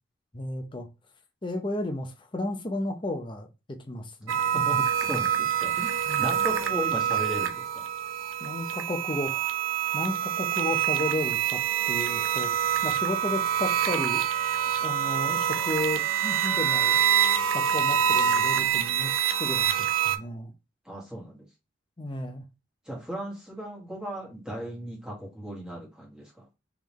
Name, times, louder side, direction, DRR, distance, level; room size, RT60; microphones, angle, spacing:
voice 1, 0.3-0.9 1.4-4.4 6.1-6.3 8.4-9.5 9.9-11.6 11.9-14.2 14.8-17.0 17.4-19.1 19.4-20.5 22.0-22.4, left 2 dB, 25° left, 0.7 m, -33 dB
voice 2, 4.2-7.9 20.8-21.5 22.8-26.4, equal, 5° right, 1.5 m, -36 dB
sound 1, 4.3-20.2, right 9 dB, 85° right, 0.6 m, -26 dB
4.0 x 3.5 x 3.1 m
head